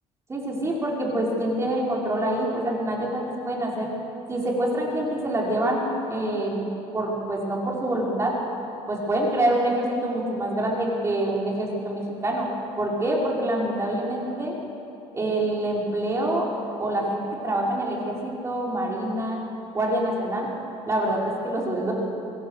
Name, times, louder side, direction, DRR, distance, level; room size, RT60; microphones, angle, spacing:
voice 1, 0.3-3.9 4.3-5.8 6.1-6.6 6.9-8.4 8.9-12.5 12.8-14.6 15.1-16.5 16.8-19.4 19.7-20.5 20.9-21.9, right 1 dB, 20° right, -3 dB, 5.4 m, -26 dB
25.0 x 22.0 x 6.6 m, 2.8 s
cardioid pair, 120°, 12 cm